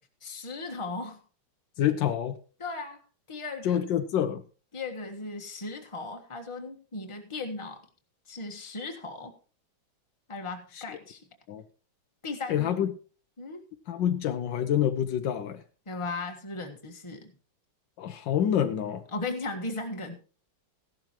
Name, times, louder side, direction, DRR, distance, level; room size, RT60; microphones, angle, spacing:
voice 1, 0.2-1.2 2.6-3.0 3.3-3.8 4.7-7.8 8.3-9.3 10.3-11.2 12.2-12.7 13.4-13.6 15.8-17.3 19.1-20.2, left 3 dB, 15° left, 3 dB, 1.4 m, -37 dB
voice 2, 1.8-2.4 3.6-4.4 11.5-11.6 12.5-12.9 13.9-15.6 18.0-19.0, left 10 dB, 75° left, 10 dB, 1.4 m, -27 dB
15.5 x 12.0 x 3.0 m, 0.36 s
omnidirectional pair, 2.1 m